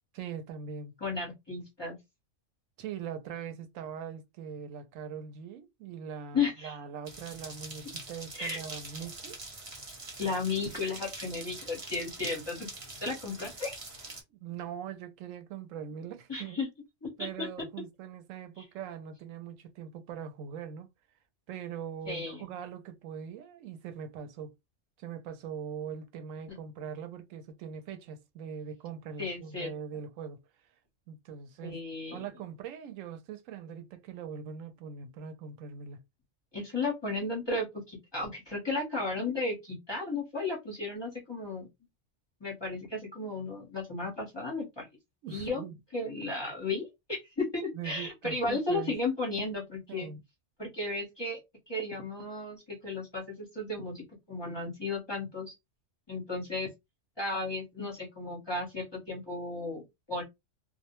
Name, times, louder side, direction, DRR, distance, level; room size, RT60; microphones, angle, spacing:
voice 1, 0.1-0.9 2.8-9.4 14.4-16.6 17.2-20.9 21.5-24.5 25.0-30.4 31.1-31.8 32.1-36.0 45.2-45.8 47.7-49.0 49.9-50.2, right 7 dB, 90° right, 1.0 m, -41 dB
voice 2, 1.0-2.0 6.3-6.8 8.4-8.6 10.2-12.7 13.0-13.7 16.3-16.7 17.0-17.5 22.1-22.5 29.2-29.7 31.6-32.3 36.5-41.7 42.4-44.9 45.3-45.6 45.9-50.1 50.6-51.4 51.7-54.0 54.3-55.5 56.1-56.7 57.2-60.2, left 3 dB, 25° left, 0.9 m, -34 dB
sound 1, 7.1-14.2, right 2 dB, 30° right, 0.7 m, -44 dB
2.3 x 2.1 x 2.9 m
omnidirectional pair, 1.3 m